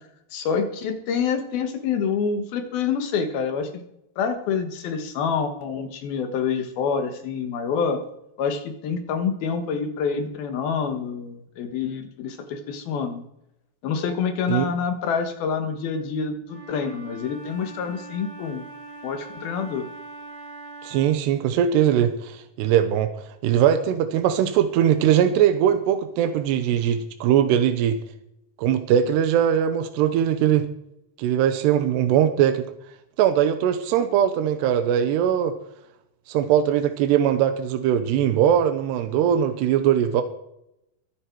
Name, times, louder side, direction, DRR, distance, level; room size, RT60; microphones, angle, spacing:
voice 1, 0.3-3.7 4.2-8.0 8.4-13.2 13.8-18.6 19.0-19.9, left 6 dB, 65° left, 7 dB, 3.2 m, -27 dB
Wind instrument woodwind instrument, 16.4-21.3, right 3 dB, 55° right, 7.0 m, -41 dB
voice 2, 20.8-23.1 23.4-28.0 28.6-30.7 31.2-32.7 33.2-35.6 36.3-40.2, right 9 dB, 80° right, 8 dB, 3.0 m, -20 dB
22.5 x 10.0 x 4.6 m, 0.80 s
omnidirectional pair, 4.9 m